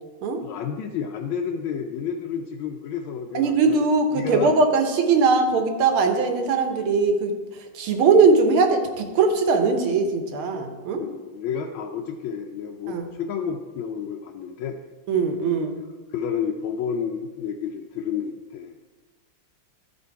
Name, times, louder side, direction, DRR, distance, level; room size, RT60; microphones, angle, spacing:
voice 1, 0.4-3.8 4.1-4.5 11.0-14.8 16.1-18.7, left 7 dB, 75° left, 2 dB, 1.3 m, -30 dB
voice 2, 3.3-7.3 7.7-11.0 12.9-13.1 15.1-15.8, right 4 dB, 75° right, 5 dB, 1.8 m, -20 dB
12.5 x 5.0 x 4.6 m, 1.3 s
omnidirectional pair, 2.4 m